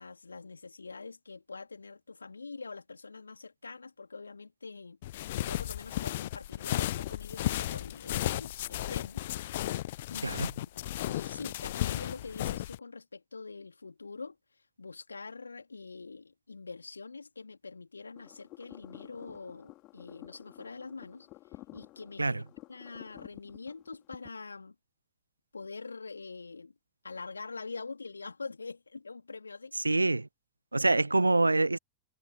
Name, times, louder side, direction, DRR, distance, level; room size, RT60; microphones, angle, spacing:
voice 1, 0.0-5.0 5.4-9.2 10.1-10.5 10.7-10.8 11.1-14.4 14.8-21.3 21.7-22.4 22.7-24.7 25.5-26.7 27.0-29.7, left 4 dB, 80° left, 3.3 m, -44 dB
sound 1, 5.0-12.8, left 14 dB, 55° left, 0.4 m, -34 dB
sound 2, 18.1-24.3, left 19 dB, 40° left, 4.5 m, -52 dB
voice 2, 29.8-30.3 30.7-31.8, right 2 dB, 80° right, 0.5 m, -25 dB
figure-of-eight pair, 90°, 0 cm